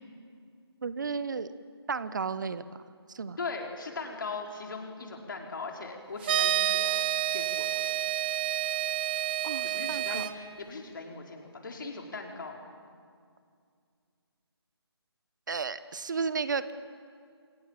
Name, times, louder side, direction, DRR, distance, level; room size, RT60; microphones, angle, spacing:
voice 1, 0.8-1.5 1.9-2.6 3.1-3.4 9.4-10.2 15.5-16.7, right 5 dB, 45° right, 14 dB, 1.1 m, -33 dB
voice 2, 3.4-7.0 7.3-8.0 9.7-12.6, left 4 dB, 50° left, 1 dB, 5.0 m, -39 dB
sound 1, 6.2-10.3, right 13 dB, 20° right, 0.8 m, -29 dB
29.0 x 27.0 x 7.5 m, 2.2 s
figure-of-eight pair, 150°, 14 cm